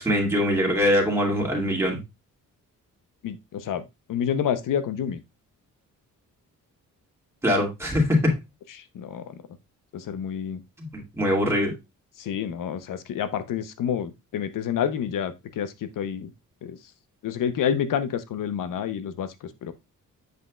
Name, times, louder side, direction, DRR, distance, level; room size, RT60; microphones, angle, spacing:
voice 1, 0.0-2.0 7.4-8.2 10.8-10.9 11.2-11.7, equal, 10° right, 2.5 m, -22 dB
voice 2, 3.2-5.2 8.8-9.3 9.9-10.6 12.2-16.3 16.6-16.8 17.2-19.7, left 8 dB, 75° left, 0.8 m, -29 dB
7.8 x 5.4 x 2.4 m
cardioid pair, 100°, 33 cm